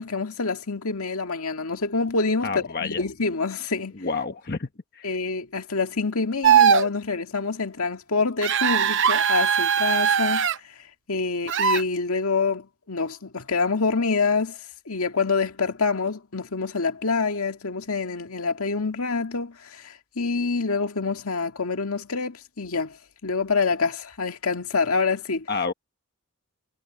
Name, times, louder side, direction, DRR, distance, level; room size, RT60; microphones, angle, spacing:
voice 1, 0.0-3.9 5.0-10.7 11.1-14.6 14.9-23.0 23.2-25.5, left 4 dB, 80° left, 2.0 m, -26 dB
voice 2, 2.4-3.0 4.0-4.7 4.9-5.1 25.5-25.7, left 4 dB, 45° left, 1.2 m, -29 dB
sound 1, 6.4-6.9 8.4-10.5 11.5-11.8, right 8 dB, 55° right, 0.8 m, -20 dB
head